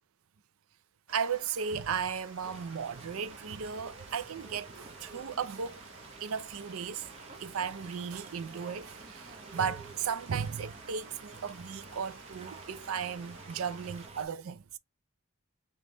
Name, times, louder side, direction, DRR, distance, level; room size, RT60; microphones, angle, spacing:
Water, 1.1-14.1, right 3 dB, 60° right, 1.2 m, -52 dB
voice 1, 1.1-5.8 6.2-7.1 7.4-14.8, right 7 dB, 75° right, 0.5 m, -35 dB
Fowl, 2.4-14.3, right 3 dB, 30° right, 0.7 m, -51 dB
3.3 x 3.1 x 3.8 m
head